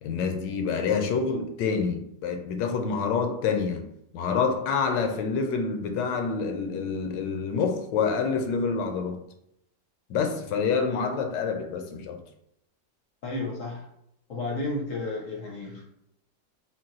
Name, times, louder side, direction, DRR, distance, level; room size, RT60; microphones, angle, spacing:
voice 1, 0.0-3.8 4.1-9.2 10.1-12.2, left 5 dB, 80° left, 1.2 m, -27 dB
voice 2, 13.2-13.8 14.3-15.8, left 2 dB, 60° left, 0.9 m, -32 dB
3.9 x 2.3 x 3.8 m
omnidirectional pair, 2.0 m